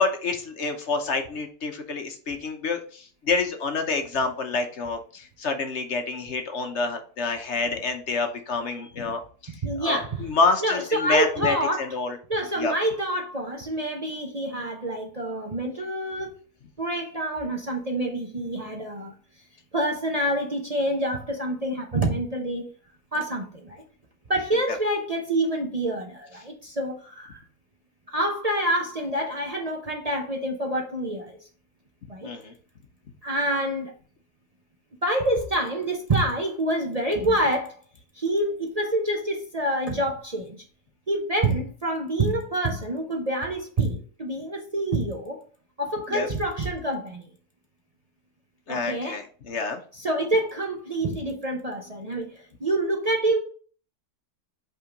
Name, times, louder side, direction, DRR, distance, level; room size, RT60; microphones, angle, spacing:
voice 1, 0.0-12.2 12.6-12.7 32.2-32.5 46.1-46.3 48.7-49.8, left 4 dB, 55° left, 1.1 m, -27 dB
voice 2, 9.6-10.3 10.6-11.9 12.3-16.4 16.8-19.1 19.7-22.7 23.1-23.8 24.3-27.4 28.1-31.4 32.1-32.3 33.2-33.9 35.0-37.7 38.1-40.6 41.1-45.4 45.8-47.3 48.7-49.2 49.9-53.4, right 1 dB, 30° right, 0.8 m, -27 dB
5.5 x 3.7 x 5.0 m
omnidirectional pair, 1.6 m